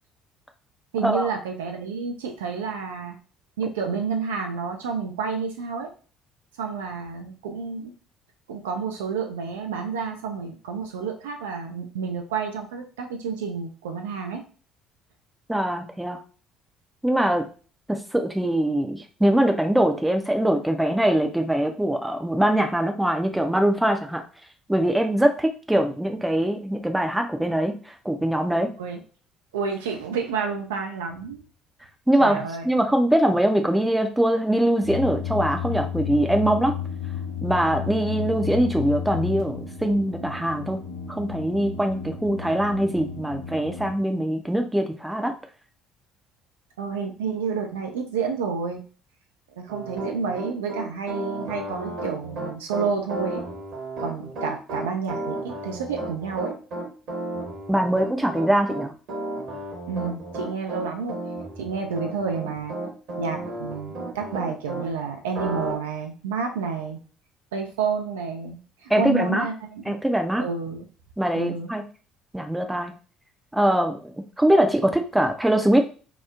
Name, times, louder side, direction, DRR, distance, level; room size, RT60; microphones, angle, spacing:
voice 1, 0.9-3.2 3.6-5.9 6.6-7.9 8.5-14.4 28.8-29.0 29.5-31.4 32.2-32.6 46.8-48.8 49.6-53.4 54.0-56.5 59.9-61.2 61.6-62.7 63.2-67.0 67.5-69.9 70.4-70.9 71.4-71.7, right 5 dB, 70° right, 3 dB, 0.4 m, -30 dB
voice 2, 15.5-16.2 17.0-17.5 17.9-24.2 24.7-28.7 32.1-36.7 37.4-40.8 41.1-45.3 57.7-58.9 68.9-69.5 69.9-70.4 71.2-71.8 72.3-72.9 73.5-75.8, right 1 dB, 5° right, 5 dB, 0.4 m, -22 dB
sound 1, 34.8-43.9, left 8 dB, 85° left, 0.9 m, -32 dB
Piano, 49.7-64.9 65.3-65.7, right 2 dB, 55° right, 1.0 m, -33 dB
2.8 x 2.0 x 2.3 m, 0.37 s
figure-of-eight pair, 55°, 0 cm